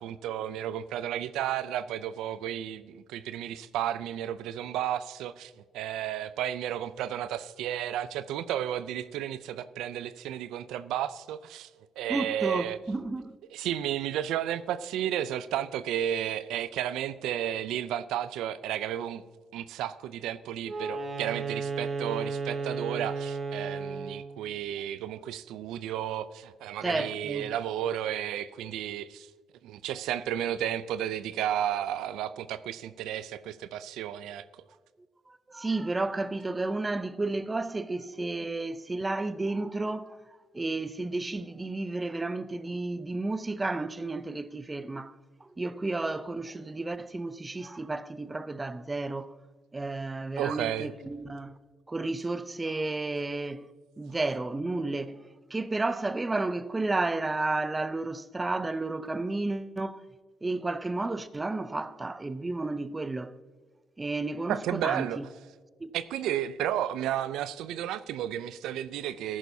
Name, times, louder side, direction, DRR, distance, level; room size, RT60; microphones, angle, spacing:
voice 1, 0.0-11.7 12.0-12.8 13.5-19.2 19.5-29.3 29.6-34.5 50.4-50.9 64.5-65.2 65.9-69.4, right 11 dB, 90° right, 0.4 m, -33 dB
voice 2, 12.1-13.3 26.8-27.5 35.5-40.2 40.5-45.1 45.6-49.3 49.7-51.5 51.9-53.7 54.0-55.2 55.5-60.0 60.4-63.4 64.0-65.3, right 2 dB, 20° right, 0.5 m, -32 dB
Wind instrument woodwind instrument, 20.6-24.3, right 4 dB, 50° right, 1.9 m, -33 dB
13.5 x 11.0 x 2.7 m
cardioid pair, 90°, 0 cm